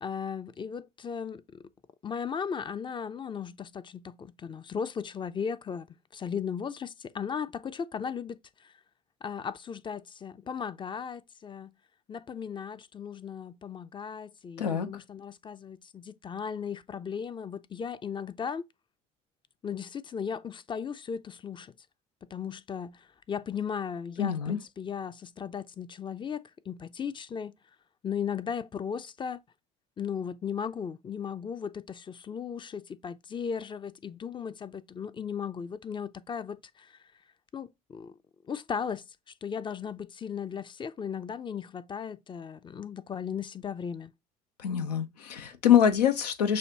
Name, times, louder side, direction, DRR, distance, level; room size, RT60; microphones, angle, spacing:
voice 1, 0.0-1.6 2.0-5.9 6.1-8.7 9.2-11.7 12.1-18.7 19.6-21.7 22.3-27.5 28.0-29.4 30.0-37.0 37.5-38.2 38.5-39.0 39.4-44.1, left 7 dB, 25° left, 0.5 m, -36 dB
voice 2, 24.2-24.6 44.6-46.6, left 9 dB, 90° left, 0.7 m, -24 dB
6.3 x 2.5 x 2.8 m
hypercardioid pair, 70°, 20 cm